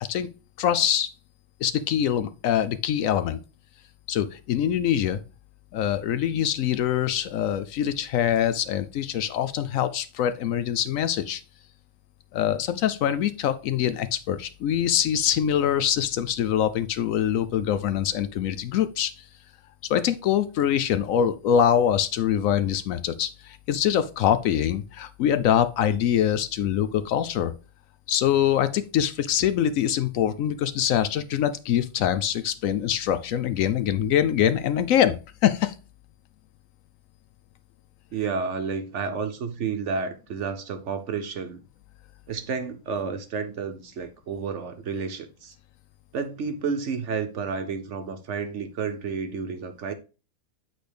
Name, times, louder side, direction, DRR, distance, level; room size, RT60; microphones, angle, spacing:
voice 1, 0.6-1.1 1.6-3.4 4.1-5.2 5.7-11.4 12.3-19.1 19.9-27.5 28.1-35.7, left 10 dB, 70° left, 0.9 m, -24 dB
voice 2, 38.1-41.6 42.3-45.5 46.1-49.9, right 5 dB, 60° right, 0.9 m, -31 dB
8.3 x 4.1 x 3.3 m
omnidirectional pair, 1.5 m